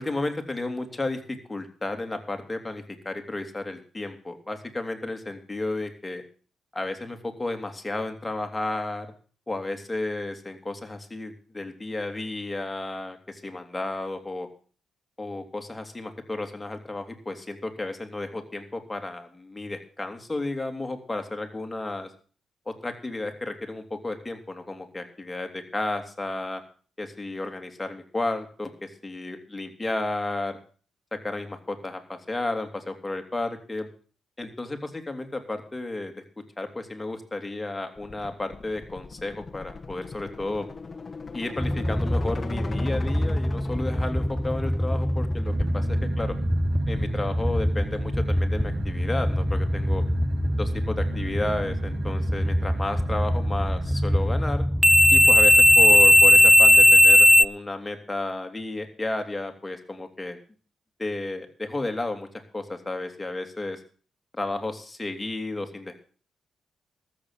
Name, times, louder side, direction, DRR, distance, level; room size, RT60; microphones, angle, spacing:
voice 1, 0.0-6.2 6.7-9.1 9.5-14.5 15.2-22.1 22.7-26.6 27.0-30.6 31.2-33.9 34.4-36.1 36.6-40.7 41.3-46.3 46.9-50.0 50.6-54.6 55.1-60.4 61.0-62.3 62.5-63.8 64.3-66.0, left 2 dB, 20° left, 4 dB, 3.1 m, -32 dB
sound 1, 38.0-46.1, left 4 dB, 40° left, 1.2 m, -40 dB
sound 2, 41.6-57.4, left 1 dB, ahead, 0.5 m, -20 dB
sound 3, 45.4-54.4, right 8 dB, 70° right, 0.8 m, -39 dB
13.5 x 7.5 x 8.1 m, 0.41 s
hypercardioid pair, 45°, 0 cm